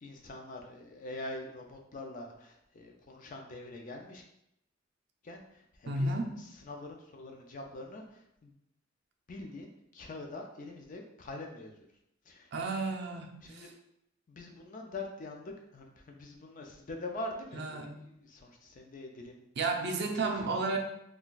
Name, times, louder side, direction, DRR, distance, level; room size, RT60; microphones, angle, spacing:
voice 1, 0.0-4.2 5.2-6.1 6.4-8.5 9.3-11.7 12.3-12.5 13.4-13.7 14.3-19.4 20.1-20.6, left 2 dB, 45° left, 2 dB, 0.4 m, -44 dB
voice 2, 5.9-6.4 12.5-13.7 17.5-18.0 19.6-20.8, right 3 dB, 60° right, 2 dB, 0.4 m, -33 dB
2.3 x 2.2 x 3.8 m, 0.79 s
head